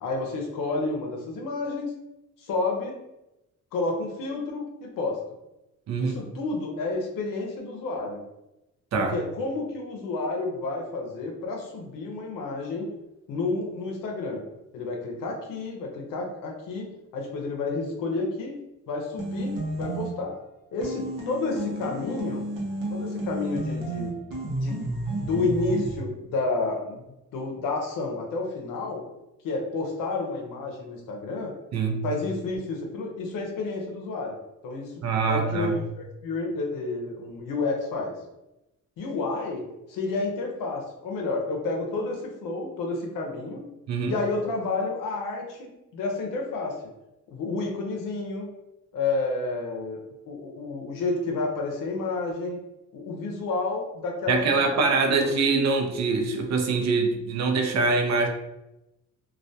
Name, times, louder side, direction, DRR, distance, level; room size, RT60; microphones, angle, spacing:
voice 1, 0.0-1.9 2.4-3.0 3.7-5.2 6.0-8.2 9.1-12.9 13.3-14.4 14.7-18.6 18.9-20.4 20.7-22.5 22.9-24.1 24.5-24.8 25.2-27.0 27.3-29.0 29.4-31.5 32.0-34.4 34.6-34.9 35.3-38.2 39.0-43.6 44.1-46.8 47.3-48.5 48.9-50.0 50.3-52.6 52.9-54.8 55.1-55.3, left 3 dB, 90° left, 1 dB, 0.6 m, -30 dB
voice 2, 5.9-6.2 8.9-9.2 31.7-32.0 35.0-35.8 43.9-44.1 54.3-58.3, right 4 dB, 55° right, 4 dB, 0.5 m, -24 dB
sound 1, 19.2-20.3 20.8-26.0, right 1 dB, 90° right, 0.7 m, -31 dB
2.3 x 2.2 x 2.6 m, 0.93 s
cardioid pair, 70°, 32 cm